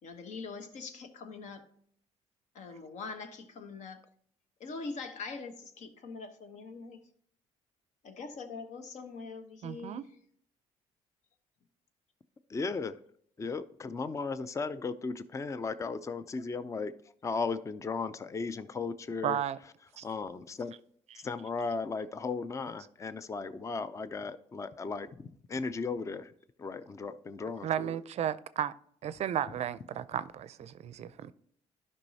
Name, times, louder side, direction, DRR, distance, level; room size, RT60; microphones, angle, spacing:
voice 1, 0.0-1.7 2.5-4.0 4.6-7.0 8.0-10.0, left 4 dB, 65° left, 1.0 m, -43 dB
voice 2, 9.6-10.0 19.2-19.6 20.0-20.1 21.1-21.2 27.6-28.7 29.0-31.3, right 10 dB, 55° right, 0.4 m, -34 dB
voice 3, 12.5-13.0 13.4-16.9 17.2-19.4 20.0-20.7 21.1-26.3 26.6-28.0, left 4 dB, 25° left, 0.4 m, -36 dB
12.0 x 5.4 x 2.8 m
supercardioid pair, 75°, 13 cm